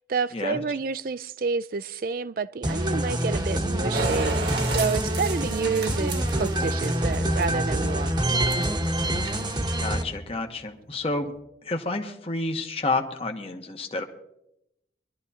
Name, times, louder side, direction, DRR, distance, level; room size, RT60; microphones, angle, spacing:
voice 1, 0.0-8.1, right 4 dB, 50° right, 0.4 m, -29 dB
sound 1, 2.6-10.0, right 1 dB, 25° right, 1.0 m, -26 dB
sound 2, 3.2-11.4, left 1 dB, 50° left, 1.1 m, -50 dB
sound 3, 3.9-7.9 8.3-8.9 9.1-9.6, right 3 dB, 70° right, 1.5 m, -33 dB
voice 2, 9.8-11.3 11.6-14.0, left 2 dB, 30° left, 1.0 m, -29 dB
23.0 x 12.0 x 2.8 m
head